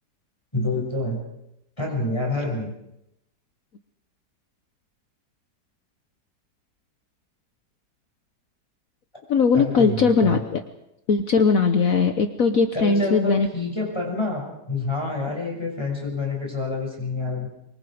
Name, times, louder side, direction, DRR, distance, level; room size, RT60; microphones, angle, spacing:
voice 1, 0.5-1.2 1.8-2.7 9.5-10.4 12.7-17.5, left 2 dB, 15° left, -1 dB, 6.4 m, -27 dB
voice 2, 9.3-10.6 11.1-13.5, left 5 dB, 55° left, 7 dB, 1.4 m, -19 dB
25.0 x 24.0 x 5.1 m, 0.83 s
omnidirectional pair, 1.8 m